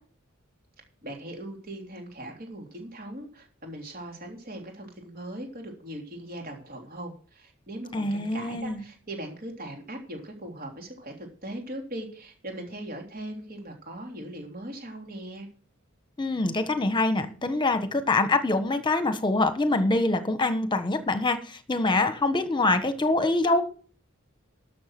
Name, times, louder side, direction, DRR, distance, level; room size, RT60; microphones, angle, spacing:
voice 1, 1.0-15.5, right 1 dB, 45° right, 2 dB, 3.3 m, -39 dB
voice 2, 7.9-8.8 16.2-23.6, left 2 dB, 20° left, 9 dB, 1.4 m, -25 dB
12.5 x 7.0 x 6.1 m, 0.41 s
head